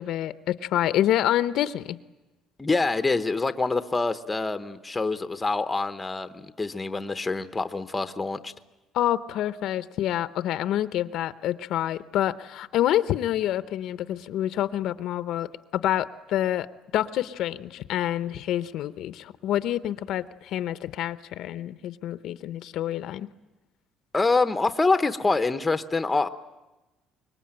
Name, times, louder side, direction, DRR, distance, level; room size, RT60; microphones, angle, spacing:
voice 1, 0.0-2.0 8.9-16.7 16.9-23.3, left 12 dB, 65° left, 13 dB, 0.8 m, -27 dB
voice 2, 2.6-8.5 24.1-26.3, left 3 dB, 15° left, 10 dB, 0.9 m, -26 dB
25.0 x 22.0 x 8.9 m, 1.0 s
cardioid pair, 145°, 0 cm